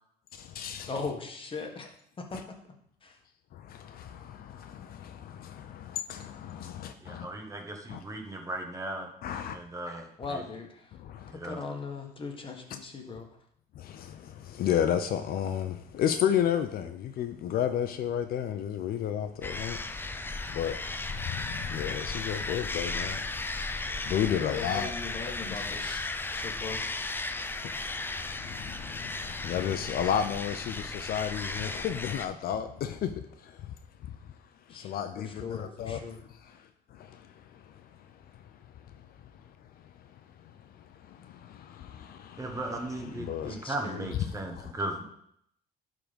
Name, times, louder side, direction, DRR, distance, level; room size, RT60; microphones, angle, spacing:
voice 1, 0.3-0.9 3.5-7.3 7.9-8.0 9.2-9.6 10.9-11.3 13.7-20.2 20.5-24.9 25.4-25.6 27.4-33.7 34.0-34.3 34.7-36.0 36.4-40.1 40.4-42.6 43.2-43.6 44.5-44.7, left 9 dB, 60° left, 0.6 m, -33 dB
voice 2, 0.9-1.9 2.2-2.6 3.0-3.2 10.2-11.0 11.3-13.4 24.3-26.0 26.3-26.8 34.7-36.2 43.4-44.2, left 4 dB, 30° left, 1.5 m, -39 dB
voice 3, 7.0-9.1 9.5-10.4 11.3-11.6 42.4-45.0, right 2 dB, 20° right, 1.4 m, -37 dB
sound 1, 19.4-32.3, left 3 dB, 10° left, 0.5 m, -35 dB
11.0 x 3.9 x 5.2 m
cardioid pair, 110°, 17 cm